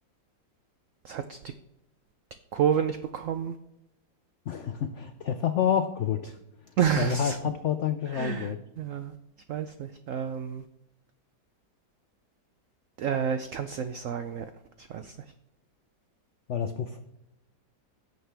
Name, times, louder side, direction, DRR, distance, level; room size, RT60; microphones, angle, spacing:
voice 1, 1.0-1.4 2.5-3.5 6.8-7.4 8.1-8.5 8.8-9.2 9.5-10.6 13.0-14.5 14.8-15.2, right 8 dB, 90° right, 9 dB, 0.6 m, -29 dB
voice 2, 4.5-6.4 7.0-8.6 16.5-17.0, left 8 dB, 90° left, 8 dB, 0.6 m, -28 dB
17.0 x 6.7 x 3.4 m, 0.89 s
omnidirectional pair, 2.0 m